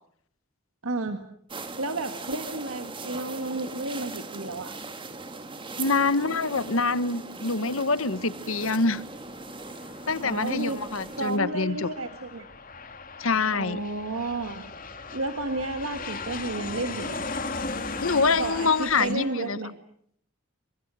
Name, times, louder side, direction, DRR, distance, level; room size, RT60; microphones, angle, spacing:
voice 1, 0.8-1.2 1.8-4.7 10.2-10.8 11.2-12.5 13.5-14.7 15.1-17.3 18.4-19.8, right 2 dB, 75° right, 7 dB, 1.8 m, -32 dB
sound 1, 1.5-11.4, right 3 dB, 25° right, 2.0 m, -39 dB
voice 2, 5.8-9.0 10.1-11.9 13.2-13.8 18.0-19.6, left 4 dB, 70° left, 15 dB, 1.2 m, -25 dB
Aircraft, 8.9-19.1, left 3 dB, 40° left, 3.0 m, -38 dB
29.0 x 25.0 x 6.4 m, 0.66 s
head